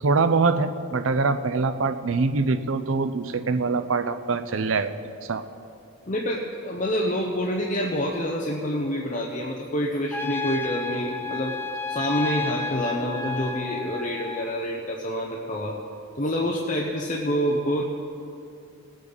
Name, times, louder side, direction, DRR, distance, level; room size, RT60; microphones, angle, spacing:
voice 1, 0.0-4.9 5.3-5.4, right 4 dB, 65° right, 10 dB, 0.6 m, -24 dB
voice 2, 6.1-11.5 11.9-15.8 16.2-17.8, equal, 35° left, -1 dB, 0.8 m, -27 dB
Trumpet, 10.1-14.5, left 4 dB, 10° left, 0.4 m, -32 dB
19.0 x 9.0 x 4.0 m, 2.6 s
head